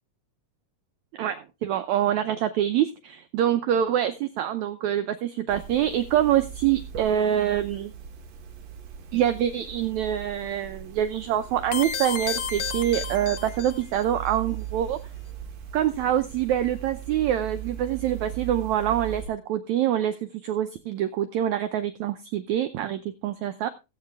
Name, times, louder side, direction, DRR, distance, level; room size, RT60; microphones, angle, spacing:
voice 1, 1.1-7.9 9.1-15.0 15.7-23.7, right 11 dB, 80° right, 10 dB, 1.7 m, -25 dB
sound 1, 5.5-19.3, right 10 dB, 55° right, 2.3 m, -39 dB
sound 2, 11.7-14.0, left 6 dB, 70° left, 1.3 m, -32 dB
16.0 x 8.8 x 3.4 m, 0.27 s
omnidirectional pair, 4.1 m